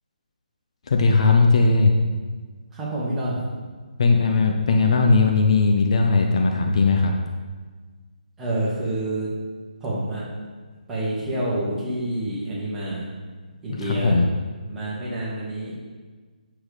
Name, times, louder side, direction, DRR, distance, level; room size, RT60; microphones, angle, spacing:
voice 1, 0.9-1.9 4.0-7.1 13.8-14.3, left 3 dB, 45° left, 3 dB, 0.8 m, -18 dB
voice 2, 2.7-3.5 8.4-9.3 9.8-10.2 10.9-13.1 13.6-14.2 14.7-15.8, right 1 dB, 10° right, -8 dB, 2.3 m, -27 dB
8.7 x 7.0 x 3.6 m, 1.4 s
figure-of-eight pair, 145°, 4 cm